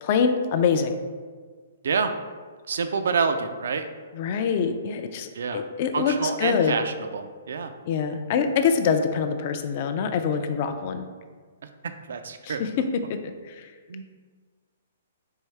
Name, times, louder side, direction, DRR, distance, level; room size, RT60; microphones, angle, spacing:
voice 1, 0.0-1.0 4.1-6.8 7.9-11.1 12.4-13.7, left 6 dB, 45° left, 8 dB, 0.3 m, -25 dB
voice 2, 2.7-3.9 5.3-5.6 5.9-7.7 11.8-12.7 13.9-14.0, right 5 dB, 75° right, 8 dB, 0.3 m, -27 dB
4.6 x 2.7 x 3.2 m, 1.5 s
hypercardioid pair, 140°, 0 cm